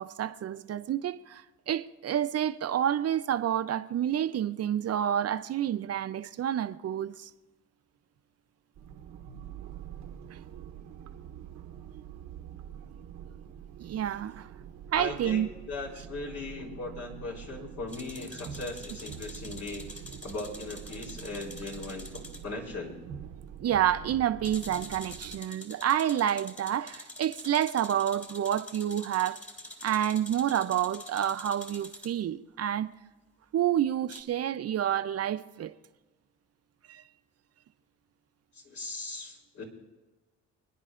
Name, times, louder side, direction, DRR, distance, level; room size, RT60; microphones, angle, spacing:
voice 1, 0.0-7.3 10.3-10.4 13.8-14.5 14.9-15.5 23.6-29.4 29.8-32.9 33.5-35.7 36.9-37.0, right 10 dB, 55° right, 0.6 m, -29 dB
sound 1, 8.8-25.4, right 9 dB, 85° right, 1.0 m, -45 dB
voice 2, 15.0-19.9 20.2-23.0 38.5-39.6, left 3 dB, 70° left, 3.7 m, -39 dB
sound 2, 17.9-22.4 24.4-32.1 34.1-34.2, left 1 dB, 25° left, 2.2 m, -46 dB
29.5 x 10.0 x 2.5 m
cardioid pair, 90°, 30 cm